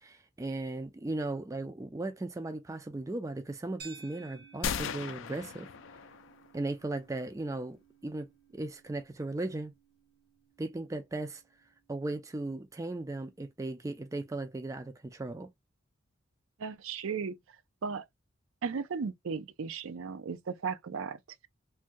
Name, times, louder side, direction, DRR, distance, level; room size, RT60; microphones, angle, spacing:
voice 1, 0.0-5.7 6.5-8.3 8.5-9.7 10.6-11.4 11.9-15.5, right 2 dB, 15° right, 0.3 m, -37 dB
sound 1, 3.8-12.2, right 6 dB, 50° right, 0.9 m, -57 dB
sound 2, 4.6-6.5, left 7 dB, 65° left, 0.4 m, -37 dB
voice 2, 16.6-17.4 17.8-18.0 18.6-21.5, right 5 dB, 80° right, 0.5 m, -36 dB
3.3 x 2.2 x 2.5 m
head